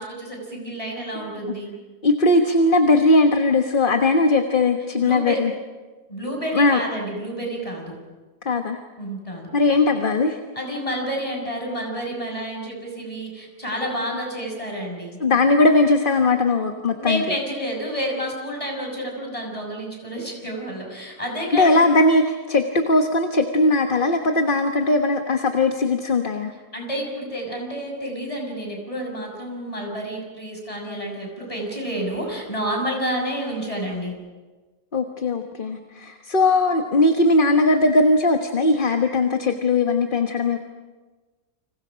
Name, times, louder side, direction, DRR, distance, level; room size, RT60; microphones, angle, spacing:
voice 1, 0.0-1.7 5.0-5.4 6.1-7.9 9.0-9.5 10.5-15.2 16.9-21.9 26.7-34.1, equal, 20° left, 1 dB, 6.6 m, -29 dB
voice 2, 2.0-5.5 6.5-6.8 8.4-8.8 9.5-10.4 15.2-17.2 21.5-26.5 34.9-40.6, left 2 dB, 35° left, 5 dB, 1.4 m, -19 dB
30.0 x 27.0 x 5.2 m, 1.3 s
omnidirectional pair, 1.6 m